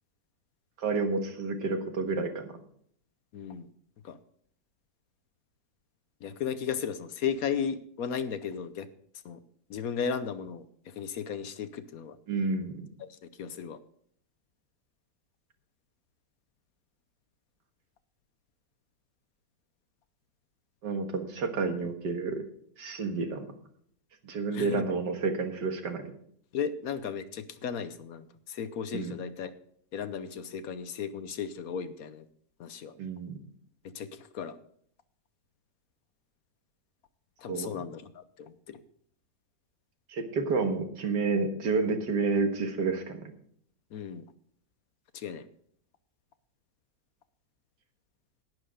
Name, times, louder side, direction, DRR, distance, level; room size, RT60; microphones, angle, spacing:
voice 1, 0.8-2.5 12.3-12.7 20.8-22.4 22.8-23.5 24.2-26.1 28.9-29.1 33.0-33.4 37.5-37.7 40.1-43.2, right 4 dB, 85° right, 6 dB, 2.1 m, -30 dB
voice 2, 3.3-3.7 4.0-4.2 6.2-8.9 9.2-9.4 9.7-12.2 13.0-13.1 13.4-13.8 24.5-24.9 26.5-29.5 29.9-32.2 32.6-32.9 33.8-34.6 37.4-38.8 43.9-44.2 45.1-45.5, left 7 dB, 65° left, 12 dB, 1.1 m, -35 dB
11.0 x 10.0 x 5.0 m, 0.65 s
omnidirectional pair, 1.8 m